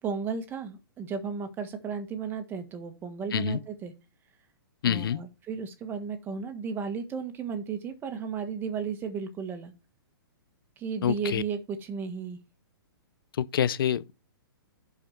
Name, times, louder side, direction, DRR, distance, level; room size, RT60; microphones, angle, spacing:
voice 1, 0.0-3.9 4.8-9.7 10.8-12.4, right 6 dB, 15° right, 1.5 m, -34 dB
voice 2, 3.3-3.6 4.8-5.2 11.0-11.4 13.4-14.1, left 9 dB, 65° left, 0.7 m, -27 dB
11.5 x 4.9 x 4.5 m
hypercardioid pair, 150°, 13 cm